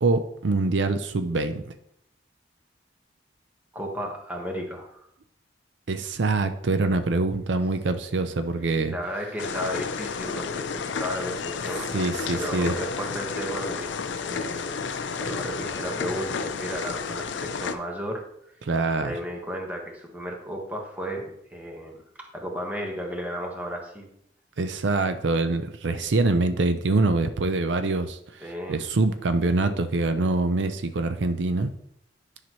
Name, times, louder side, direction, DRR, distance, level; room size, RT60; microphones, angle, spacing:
voice 1, 0.0-1.7 5.9-8.9 11.9-12.7 18.7-19.1 24.6-31.7, right 3 dB, 75° right, 9 dB, 0.5 m, -24 dB
voice 2, 3.7-5.1 8.9-12.0 12.3-13.9 14.2-14.8 15.1-18.2 19.0-24.1 28.4-28.8, equal, 10° right, 0 dB, 1.3 m, -34 dB
sound 1, 9.4-17.8, left 5 dB, 80° left, 0.5 m, -31 dB
10.5 x 5.8 x 3.1 m, 0.74 s
head